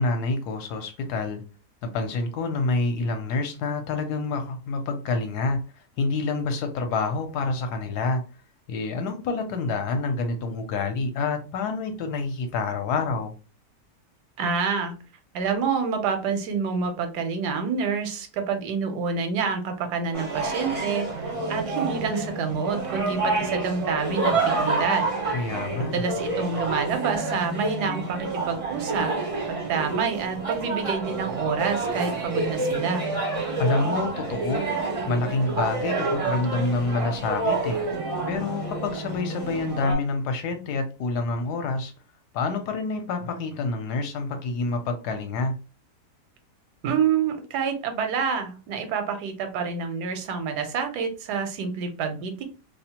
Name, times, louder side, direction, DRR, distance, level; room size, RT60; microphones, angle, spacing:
voice 1, 0.0-1.4 1.8-5.6 6.0-8.2 8.7-13.3 25.3-26.0 33.6-34.7 35.1-37.8 38.3-41.9 42.3-45.5, left 3 dB, 75° left, 1.1 m, -27 dB
voice 2, 14.4-14.9 15.3-25.1 25.8-29.1 29.5-33.0 46.8-52.4, right 5 dB, 75° right, 1.2 m, -27 dB
sound 1, 20.1-39.9, right 3 dB, 60° right, 0.3 m, -28 dB
2.8 x 2.0 x 2.8 m
omnidirectional pair, 1.8 m